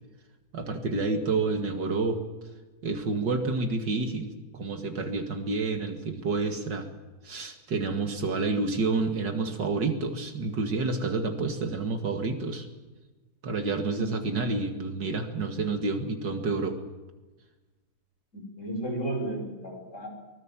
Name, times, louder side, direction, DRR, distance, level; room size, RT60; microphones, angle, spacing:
voice 1, 0.5-2.2 2.8-6.9 7.2-12.7 13.4-16.8, right 3 dB, 65° right, 6 dB, 2.7 m, -29 dB
voice 2, 18.3-20.1, right 1 dB, 40° left, 1 dB, 6.2 m, -33 dB
24.5 x 19.5 x 7.5 m, 1.2 s
omnidirectional pair, 2.1 m